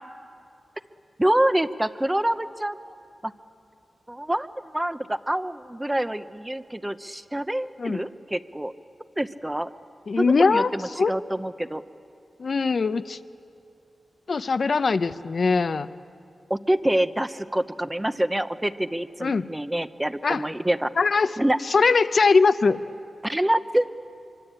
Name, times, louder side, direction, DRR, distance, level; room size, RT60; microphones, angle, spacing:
voice 1, 1.2-2.8 3.2-3.3 4.1-8.7 9.2-9.7 10.2-11.8 16.5-20.9 21.4-21.6 23.2-23.9, right 1 dB, 10° right, 13 dB, 0.8 m, -26 dB
voice 2, 10.1-11.1 12.4-13.2 14.3-15.9 19.2-19.5 20.2-20.4 21.0-21.3 21.7-22.8, left 4 dB, 60° left, 13 dB, 0.7 m, -21 dB
25.0 x 24.0 x 8.9 m, 2.6 s
wide cardioid pair, 90°, 0 cm